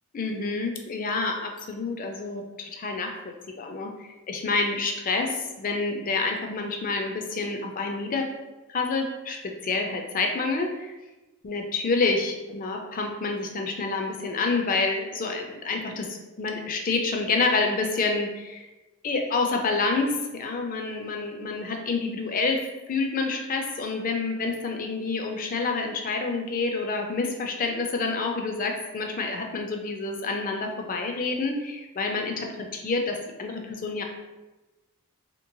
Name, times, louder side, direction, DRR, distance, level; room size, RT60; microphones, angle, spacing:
voice 1, 0.1-8.3 8.7-10.9 11.4-18.7 19.0-22.6 22.9-34.0, left 3 dB, 40° left, 3 dB, 0.4 m, -28 dB
2.9 x 2.9 x 2.6 m, 1.1 s
head